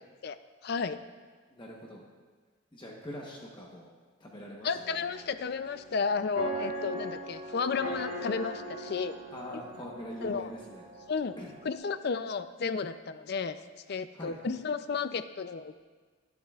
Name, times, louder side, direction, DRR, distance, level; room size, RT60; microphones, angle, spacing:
voice 1, 0.6-1.0 4.6-9.1 9.5-9.6 10.2-10.5 11.1-11.3 11.6-13.6 13.9-15.7, left 5 dB, 50° left, 11 dB, 0.4 m, -32 dB
voice 2, 1.5-2.0 2.7-3.9 4.2-5.1 9.3-10.8 11.4-11.5 14.1-14.6, equal, 20° left, -2 dB, 1.0 m, -43 dB
sound 1, 4.7-11.7, right 2 dB, 55° right, 1.4 m, -41 dB
21.0 x 7.4 x 2.4 m, 1.4 s
head